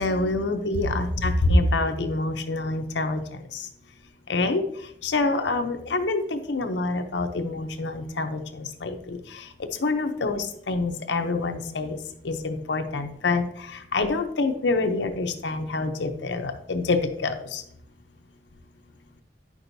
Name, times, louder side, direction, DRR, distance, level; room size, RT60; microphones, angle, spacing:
voice 1, 0.0-3.2 3.5-3.7 4.3-4.6 5.0-9.4 9.8-12.0 12.2-17.6, left 2 dB, 80° left, 6 dB, 0.7 m, -26 dB
9.5 x 6.1 x 2.7 m, 0.71 s
head